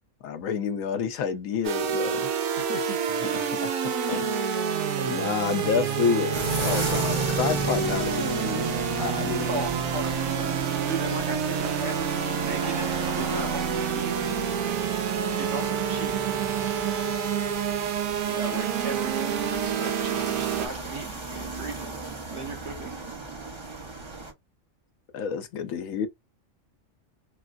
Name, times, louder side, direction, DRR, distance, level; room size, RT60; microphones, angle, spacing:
voice 1, 0.2-2.3 3.2-4.6 5.0-6.3 6.6-9.5 18.5-18.6 25.1-26.1, left 7 dB, 85° left, 1.0 m, -29 dB
sound 1, 1.6-20.7, right 7 dB, 90° right, 1.1 m, -28 dB
voice 2, 2.6-3.5 9.5-10.6 10.8-14.4 15.4-16.2 18.3-23.0, right 2 dB, 55° right, 1.2 m, -37 dB
sound 2, 6.3-24.3, right 2 dB, 30° right, 0.6 m, -35 dB
3.4 x 2.3 x 2.5 m
omnidirectional pair, 1.4 m